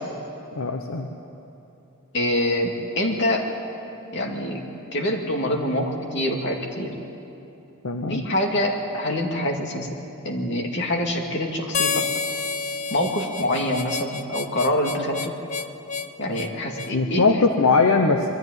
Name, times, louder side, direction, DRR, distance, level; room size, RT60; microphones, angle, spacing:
voice 1, 0.5-1.1 7.8-8.2 16.9-18.3, left 4 dB, 75° left, 4 dB, 1.0 m, -20 dB
voice 2, 2.1-3.5 4.1-4.6 4.9-6.9 8.1-9.9 10.2-12.1 12.9-15.3 16.2-17.3, left 1 dB, 55° left, 2 dB, 2.3 m, -25 dB
Harmonica, 11.7-17.0, left 5 dB, 35° left, 0.6 m, -29 dB
22.0 x 13.5 x 9.4 m, 2.9 s
head